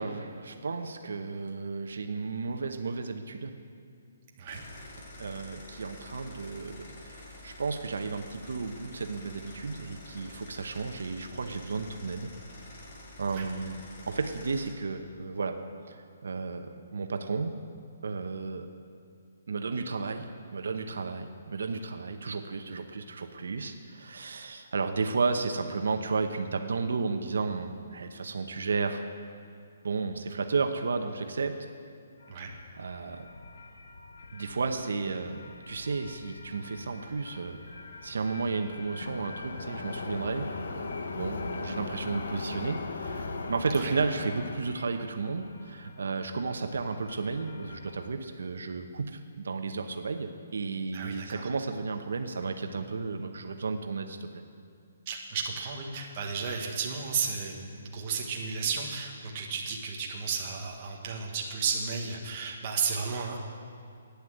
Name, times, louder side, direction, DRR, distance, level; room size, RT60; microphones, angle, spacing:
voice 1, 0.0-3.5 5.2-15.6 15.9-17.5 18.0-18.7 19.5-29.0 29.8-31.6 32.8-33.3 34.3-40.5 41.1-54.4, right 4 dB, 75° right, 6 dB, 0.9 m, -33 dB
sound 1, 4.5-14.7, left 2 dB, 35° left, 1.8 m, -48 dB
Light Rail Train Passing, 32.2-48.1, left 3 dB, 70° left, 1.1 m, -41 dB
voice 2, 50.9-51.5 55.1-63.4, right 5 dB, 25° right, -1 dB, 1.3 m, -33 dB
11.5 x 9.6 x 7.7 m, 2.4 s
hypercardioid pair, 175°, 0 cm